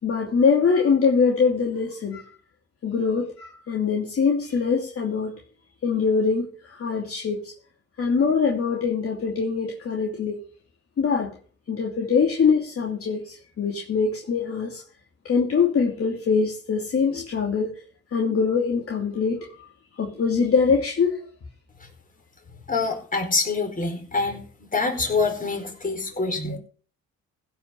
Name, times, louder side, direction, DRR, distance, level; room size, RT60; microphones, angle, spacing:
voice 1, 0.0-2.2 2.8-5.3 5.8-7.5 8.0-10.4 11.0-11.3 11.7-14.8 15.2-17.7 18.1-19.4 20.0-21.2 26.4-26.6, left 5 dB, 50° left, -1 dB, 2.7 m, -23 dB
voice 2, 22.7-24.4 24.7-26.6, left 4 dB, 25° left, 2 dB, 4.7 m, -25 dB
16.0 x 5.9 x 6.6 m, 0.41 s
cardioid pair, 90°, 30 cm